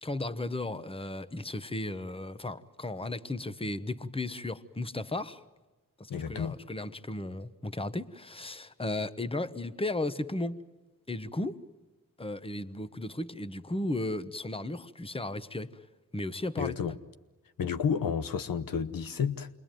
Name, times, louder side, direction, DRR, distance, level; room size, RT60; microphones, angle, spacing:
voice 1, 0.0-5.4 6.0-10.6 11.1-11.6 12.2-15.8 16.1-16.8, left 2 dB, 15° left, 1.1 m, -35 dB
voice 2, 6.1-6.6 16.6-17.0 17.6-19.5, left 7 dB, 90° left, 1.1 m, -31 dB
28.0 x 22.0 x 9.2 m
cardioid pair, 65°, 33 cm